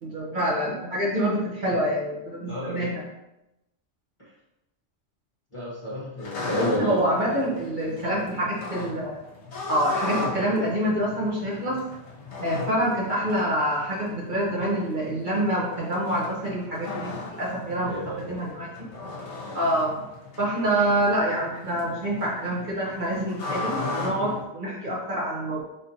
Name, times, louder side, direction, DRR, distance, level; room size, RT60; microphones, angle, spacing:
voice 1, 0.0-3.0 6.6-9.2 9.7-11.8 12.4-17.9 18.3-18.7 19.5-20.1 20.4-25.6, right 1 dB, 45° right, -6 dB, 1.1 m, -26 dB
voice 2, 2.5-2.9 5.5-7.0 17.8-18.4, equal, 25° left, -8 dB, 1.0 m, -30 dB
sound 1, 6.2-24.4, left 3 dB, 70° left, 1.1 m, -36 dB
4.2 x 3.6 x 2.8 m, 0.92 s
omnidirectional pair, 1.2 m